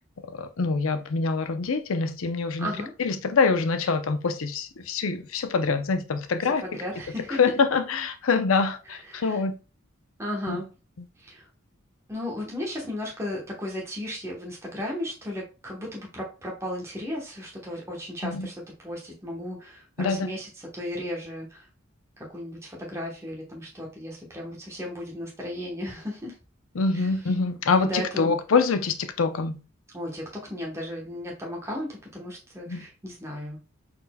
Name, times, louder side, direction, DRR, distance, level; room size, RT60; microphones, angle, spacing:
voice 1, 0.3-2.7 3.0-6.6 7.4-9.5 10.5-10.6 18.2-18.5 20.0-20.3 26.8-29.6 32.7-32.8, left 4 dB, 85° left, 0.6 m, -25 dB
voice 2, 2.6-2.9 6.4-7.4 8.8-9.4 10.2-10.7 11.2-11.5 12.1-21.7 22.2-26.4 26.9-27.3 27.8-28.3 29.9-33.6, left 1 dB, 15° right, 1.0 m, -35 dB
4.2 x 4.1 x 2.2 m
head